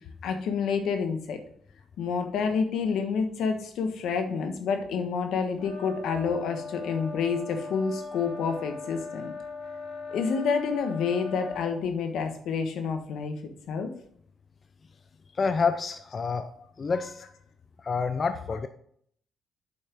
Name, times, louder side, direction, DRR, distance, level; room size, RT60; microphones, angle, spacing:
voice 1, 0.2-1.4 2.0-9.3 10.1-13.9 18.2-18.3, left 5 dB, 80° left, 6 dB, 1.2 m, -29 dB
sound 1, 5.6-11.8, left 4 dB, 65° left, 3.1 m, -39 dB
voice 2, 15.3-16.5 16.8-17.2 17.8-18.7, left 5 dB, 40° left, 9 dB, 0.6 m, -28 dB
7.5 x 5.7 x 4.5 m, 0.63 s
cardioid pair, 90°, 0 cm